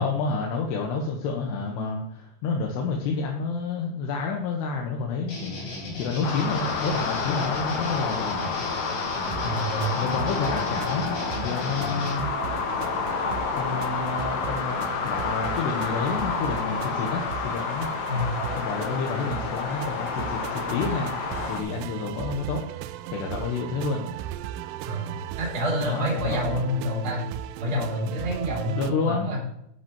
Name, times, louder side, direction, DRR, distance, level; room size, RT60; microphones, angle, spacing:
voice 1, 0.0-5.7 6.0-8.4 9.9-12.3 13.5-18.1 18.5-21.1 21.5-22.6 23.1-24.0 25.8-26.6 28.7-29.3, left 4 dB, 70° left, 0 dB, 3.2 m, -29 dB
sound 1, 5.3-12.1, left 2 dB, 45° left, 5.5 m, -35 dB
sound 2, 6.2-21.6, left 5 dB, 90° left, 1.6 m, -29 dB
sound 3, 9.1-28.9, right 11 dB, 80° right, 2.5 m, -37 dB
voice 2, 9.4-10.0 18.1-18.3 24.9-27.2 27.6-29.4, left 1 dB, 20° right, -2 dB, 3.2 m, -28 dB
11.0 x 10.5 x 3.1 m, 0.75 s
omnidirectional pair, 5.4 m